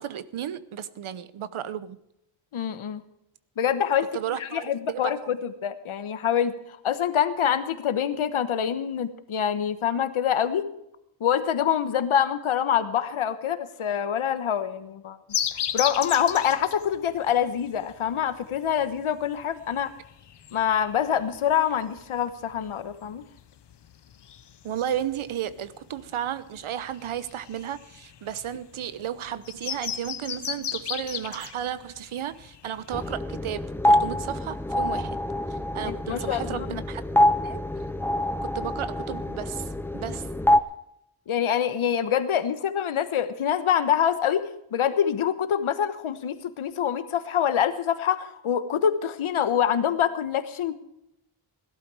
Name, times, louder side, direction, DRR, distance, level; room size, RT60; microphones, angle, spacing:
voice 1, 0.0-2.0 4.1-5.3 24.6-35.2 35.5-37.0 37.4-37.6 38.4-40.3, right 10 dB, 80° right, 1.0 m, -33 dB
voice 2, 2.5-3.0 3.6-4.1 4.4-6.5 6.8-10.6 11.2-15.2 15.7-19.9 20.5-23.2 35.8-36.8 41.3-50.7, left 9 dB, 85° left, 1.3 m, -25 dB
sound 1, 15.3-33.2, left 9 dB, 60° left, 0.9 m, -36 dB
sound 2, 32.9-40.6, left 1 dB, 5° left, 0.6 m, -25 dB
17.5 x 12.0 x 4.9 m
wide cardioid pair, 135°, 48 cm